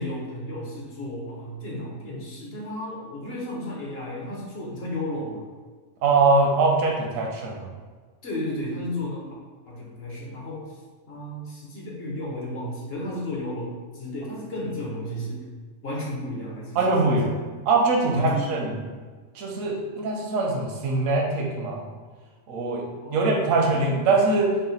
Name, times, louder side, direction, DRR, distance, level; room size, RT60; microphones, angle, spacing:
voice 1, 0.0-5.5 8.2-9.3 9.7-10.8 11.1-15.4 15.8-16.8 17.1-17.3 18.0-18.6 23.0-23.8, left 1 dB, 55° left, -3 dB, 1.0 m, -33 dB
voice 2, 6.0-7.7 16.7-17.4 17.7-18.7 19.3-21.9 22.5-24.5, right 3 dB, 75° right, 0 dB, 1.1 m, -22 dB
4.0 x 2.2 x 4.0 m, 1.5 s
omnidirectional pair, 1.4 m